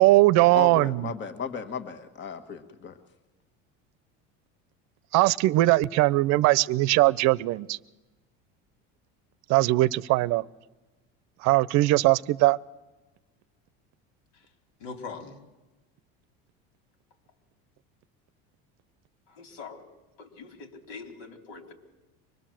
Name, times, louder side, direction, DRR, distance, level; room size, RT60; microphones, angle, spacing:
voice 1, 0.0-1.1 5.1-7.8 9.5-10.4 11.4-12.6, right 18 dB, 60° right, 19 dB, 0.7 m, -20 dB
voice 2, 0.5-3.0, left 6 dB, 35° left, 9 dB, 1.6 m, -35 dB
voice 3, 14.8-15.4 19.3-19.9 20.2-21.7, left 4 dB, 70° left, 5 dB, 3.9 m, -42 dB
24.5 x 20.5 x 7.6 m, 1.1 s
supercardioid pair, 120°, 32 cm